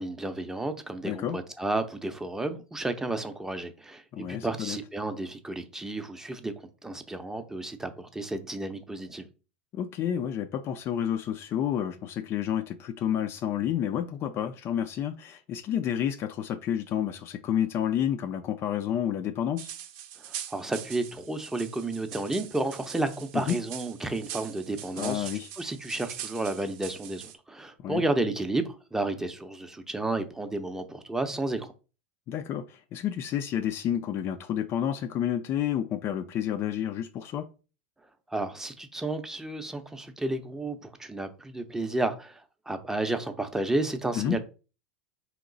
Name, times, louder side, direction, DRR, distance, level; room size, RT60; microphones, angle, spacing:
voice 1, 0.0-4.0 4.3-6.5 6.8-9.3 20.2-25.3 25.6-31.7 38.3-44.4, right 2 dB, 10° right, 0.6 m, -32 dB
voice 2, 1.0-1.4 4.1-4.8 9.7-19.7 23.3-23.6 25.0-25.5 27.8-28.0 32.3-37.5 44.1-44.4, left 10 dB, 40° left, 0.4 m, -30 dB
sound 1, 19.6-27.3, right 10 dB, 55° right, 0.6 m, -42 dB
3.7 x 2.9 x 3.8 m
hypercardioid pair, 85°, 6 cm